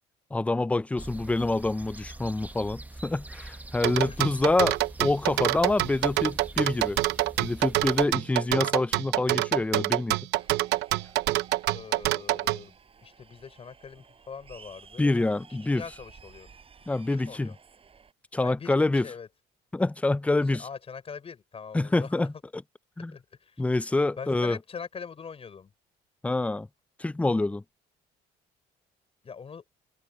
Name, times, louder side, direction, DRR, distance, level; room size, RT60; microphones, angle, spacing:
voice 1, 0.3-7.0 7.4-10.2 15.0-15.8 16.9-17.5 18.3-19.1 19.7-20.7 21.7-22.6 23.0-23.1 23.6-24.6 26.2-26.7 27.0-27.6, left 2 dB, 10° left, 0.5 m, -26 dB
sound 1, 1.0-8.1, right 2 dB, 10° right, 1.4 m, -44 dB
sound 2, 3.8-12.6, right 17 dB, 90° right, 0.8 m, -26 dB
voice 2, 4.1-4.4 11.7-12.7 13.0-15.2 15.7-16.5 17.1-17.5 18.4-19.3 20.6-22.1 23.1-23.6 24.2-25.7 29.2-29.6, left 6 dB, 35° left, 5.9 m, -42 dB
sound 3, 10.3-18.1, right 5 dB, 35° right, 7.7 m, -54 dB
cardioid pair, 110°, 17 cm